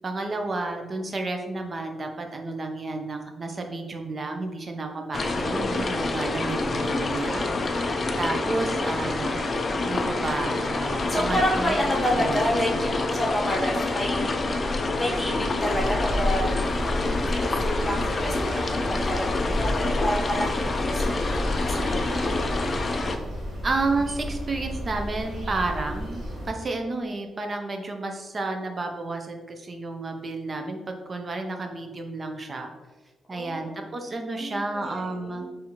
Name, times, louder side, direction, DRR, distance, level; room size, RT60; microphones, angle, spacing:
voice 1, 0.0-7.5 8.2-11.8 12.2-12.3 23.6-32.7 33.3-35.4, right 3 dB, 30° right, 4 dB, 0.4 m, -31 dB
sound 1, 5.1-23.2, left 2 dB, 35° left, 0.3 m, -27 dB
voice 2, 11.1-16.6 17.3-22.8 33.3-33.8 34.4-35.5, equal, 20° left, -2 dB, 0.8 m, -30 dB
sound 2, 16.1-26.5, equal, 65° right, 1.4 m, -34 dB
4.2 x 2.5 x 2.8 m, 1.2 s
cardioid pair, 140°, 0 cm